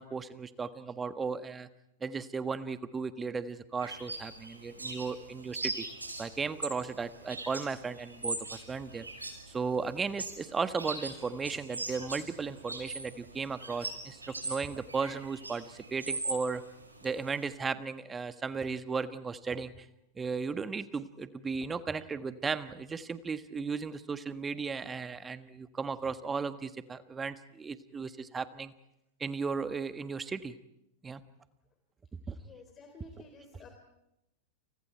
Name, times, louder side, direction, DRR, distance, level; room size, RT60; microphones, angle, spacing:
voice 1, 0.0-1.7 2.0-5.8 6.2-9.1 9.5-16.6 17.0-19.7 20.2-28.7 29.2-30.6 31.0-31.2 32.3-32.4, right 5 dB, 15° right, 11 dB, 1.5 m, -35 dB
sound 1, 3.8-17.5, right 2 dB, 85° right, 6.1 m, -41 dB
voice 2, 32.4-33.7, left 3 dB, 25° left, 4 dB, 3.9 m, -52 dB
30.0 x 29.5 x 4.6 m, 0.87 s
figure-of-eight pair, 95°, 0 cm